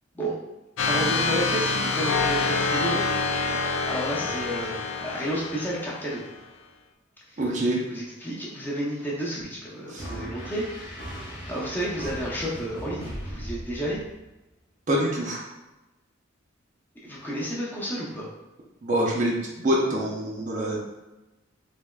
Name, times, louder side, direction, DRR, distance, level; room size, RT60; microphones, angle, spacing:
sound 1, 0.8-6.3, left 4 dB, 70° left, 0.3 m, -26 dB
voice 1, 0.8-3.1 3.5-4.8 5.0-6.2 7.3-7.4 7.9-10.7 11.5-14.0 17.0-18.3, right 1 dB, 10° left, -6 dB, 0.6 m, -31 dB
voice 2, 7.4-7.8 9.9-10.0 14.9-15.4 18.8-20.8, right 1 dB, 40° right, -2 dB, 0.5 m, -25 dB
sound 2, 10.0-14.3, equal, 40° left, 1.0 m, -38 dB
3.3 x 2.9 x 2.2 m, 1.0 s
head